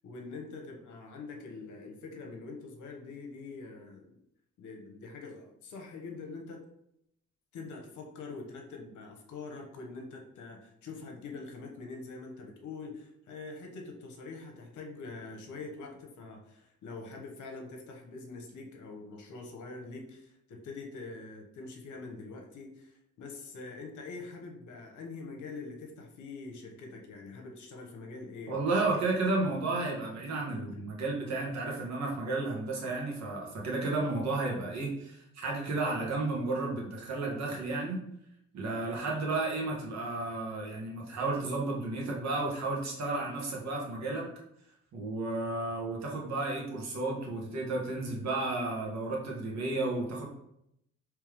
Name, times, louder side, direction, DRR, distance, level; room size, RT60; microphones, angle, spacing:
voice 1, 0.0-4.2 4.6-6.6 7.5-29.0 29.4-29.6 30.5-30.9, left 3 dB, 75° left, 2 dB, 0.9 m, -44 dB
voice 2, 28.5-38.0 38.5-44.3 44.9-50.2, right 2 dB, 65° right, -2 dB, 1.3 m, -32 dB
3.4 x 3.2 x 3.3 m, 0.77 s
cardioid pair, 90°, 30 cm